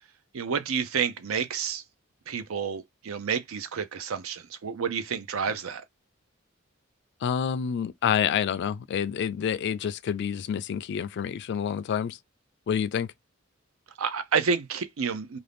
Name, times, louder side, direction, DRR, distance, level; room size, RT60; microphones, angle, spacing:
voice 1, 0.3-1.8 2.3-5.8 14.0-15.4, right 6 dB, 80° right, 0.5 m, -29 dB
voice 2, 7.2-12.2 12.7-13.1, left 8 dB, 55° left, 0.3 m, -28 dB
2.6 x 2.4 x 3.3 m
head